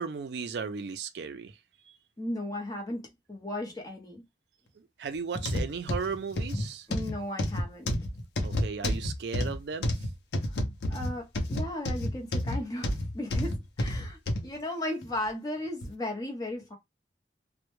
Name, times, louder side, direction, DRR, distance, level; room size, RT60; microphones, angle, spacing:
voice 1, 0.0-1.6 1.9-2.0 4.8-6.9 8.4-10.1, right 5 dB, 75° right, 0.4 m, -36 dB
voice 2, 2.2-4.2 6.9-8.0 10.5-10.6 10.9-16.7, left 1 dB, 20° left, 0.7 m, -36 dB
sound 1, 5.4-14.5 15.0-15.2 15.8-15.9, left 1 dB, 75° left, 0.6 m, -30 dB
2.1 x 2.1 x 3.0 m
head